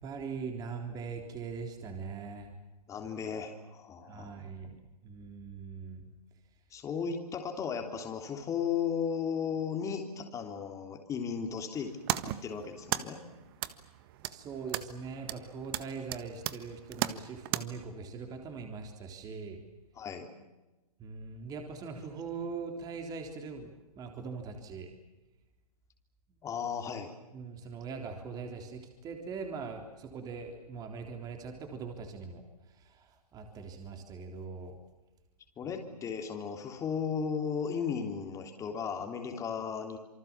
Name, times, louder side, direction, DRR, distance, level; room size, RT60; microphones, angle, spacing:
voice 1, 0.0-2.5 4.1-4.8 5.0-6.1 14.3-19.6 21.0-24.9 27.3-32.4 32.8-34.8, right 5 dB, 20° right, 4 dB, 3.6 m, -41 dB
voice 2, 2.9-4.5 6.7-11.9 12.3-13.2 19.9-20.3 26.4-27.1 35.6-40.0, left 6 dB, 15° left, 4 dB, 3.3 m, -35 dB
sound 1, 11.7-17.6, right 14 dB, 35° right, 1.5 m, -37 dB
28.0 x 24.5 x 7.4 m, 1.1 s
hypercardioid pair, 140°, 20 cm